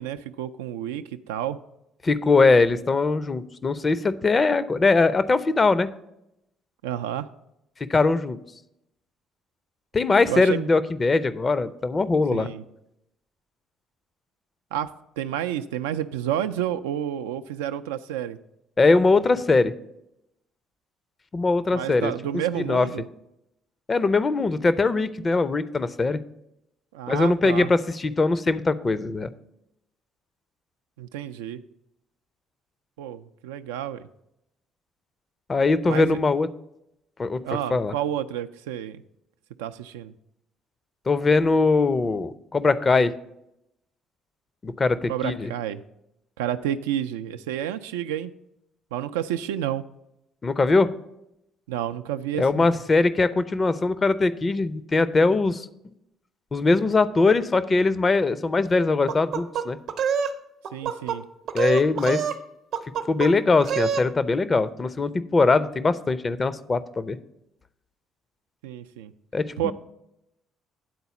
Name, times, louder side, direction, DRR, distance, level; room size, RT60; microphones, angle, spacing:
voice 1, 0.0-1.6 6.8-7.3 10.3-10.7 12.3-12.6 14.7-18.4 21.7-23.1 26.9-27.7 31.0-31.6 33.0-34.1 35.9-36.2 37.4-39.0 39.6-40.1 45.1-45.8 46.4-48.3 48.9-49.8 51.7-52.8 60.7-61.3 68.6-69.1 69.6-69.7, right 11 dB, 80° right, 9 dB, 0.3 m, -30 dB
voice 2, 2.0-5.9 7.9-8.4 9.9-12.5 18.8-19.7 21.3-22.1 22.6-22.9 23.9-26.2 27.1-29.3 35.5-36.5 37.2-37.4 37.7-37.9 41.1-43.1 44.6-45.5 50.4-50.9 52.4-55.7 56.5-59.8 61.5-62.2 63.1-67.2 69.3-69.7, left 3 dB, 35° left, 15 dB, 0.5 m, -21 dB
sound 1, 59.1-60.3 60.6-61.2 61.5-62.4 62.7-63.3 63.6-64.1, right 7 dB, 65° right, 0.7 m, -26 dB
9.4 x 4.0 x 6.9 m, 0.83 s
hypercardioid pair, 50°, 0 cm